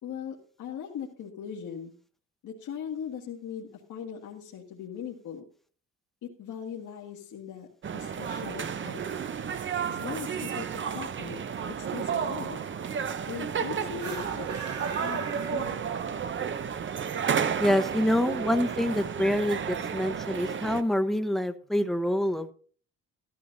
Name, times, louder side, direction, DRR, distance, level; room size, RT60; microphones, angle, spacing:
voice 1, 0.0-1.9 2.4-5.4 6.2-7.7 7.9-9.0 9.9-11.4 11.8-12.6 13.3-14.7 15.0-15.8, left 8 dB, 75° left, -2 dB, 1.8 m, -40 dB
sound 1, 7.8-20.8, right 7 dB, 40° right, 0.7 m, -32 dB
sound 2, 13.9-16.2, right 6 dB, 60° right, 4.3 m, -40 dB
voice 2, 17.6-22.5, left 1 dB, ahead, 7 dB, 1.0 m, -26 dB
13.5 x 13.0 x 2.7 m, 0.44 s
cardioid pair, 90°, 30 cm